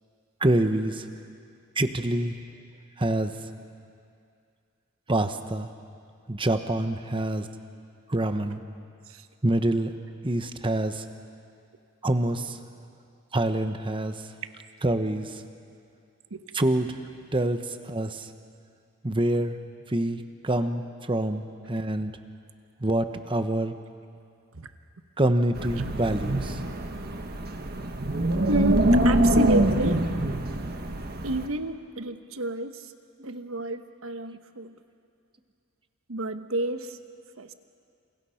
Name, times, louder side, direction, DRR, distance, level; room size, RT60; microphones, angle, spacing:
voice 1, 0.4-1.0 1.8-2.4 3.0-3.3 5.1-5.7 6.3-7.5 8.1-8.6 9.4-9.9 10.2-11.0 12.0-12.6 13.3-14.3 14.8-15.4 16.5-16.9 17.3-18.3 19.0-19.6 19.9-22.1 22.8-23.8 25.2-26.6 33.2-33.3, right 1 dB, 25° right, 8 dB, 1.1 m, -26 dB
Wind, 25.5-31.5, right 1 dB, 45° right, 1.5 m, -24 dB
voice 2, 28.5-30.0 31.2-32.9 33.2-34.7 36.1-37.0 37.4-37.5, right 2 dB, 70° right, 9 dB, 1.2 m, -30 dB
29.0 x 28.5 x 5.8 m, 2.4 s
head